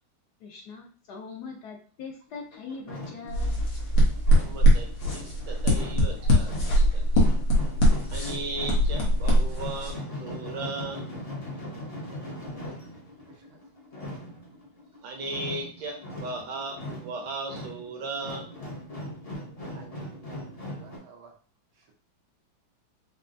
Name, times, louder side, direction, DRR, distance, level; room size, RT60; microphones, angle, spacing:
voice 1, 0.4-3.6, left 5 dB, 70° left, 1 dB, 1.1 m, -41 dB
sound 1, 2.3-21.0, left 1 dB, 45° left, 0.5 m, -40 dB
sound 2, 3.3-9.9, equal, 90° left, 1.8 m, -22 dB
voice 2, 4.5-4.9 5.1-7.2 8.1-11.0 15.0-18.5, right 3 dB, 70° right, 2 dB, 1.5 m, -36 dB
voice 3, 13.3-13.6 19.7-21.3, right 5 dB, 90° right, 1 dB, 1.6 m, -53 dB
5.5 x 2.0 x 2.6 m, 0.40 s
omnidirectional pair, 2.1 m